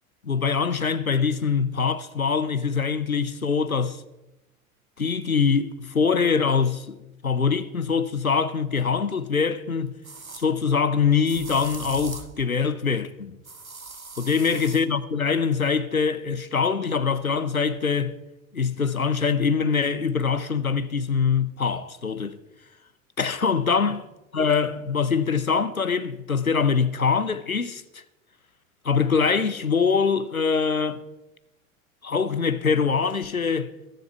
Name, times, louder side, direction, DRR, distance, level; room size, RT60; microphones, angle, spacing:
voice 1, 0.2-4.0 5.0-9.9 10.4-13.4 14.2-18.2 18.5-22.4 23.2-24.0 24.3-28.0 28.8-31.0 32.0-33.7, left 5 dB, 90° left, 0.8 m, -23 dB
sound 1, 8.9-9.0 10.0-10.5 11.2-12.4 13.4-14.8, right 3 dB, 85° right, 1.4 m, -40 dB
22.0 x 13.0 x 4.6 m
figure-of-eight pair, 75°, 41 cm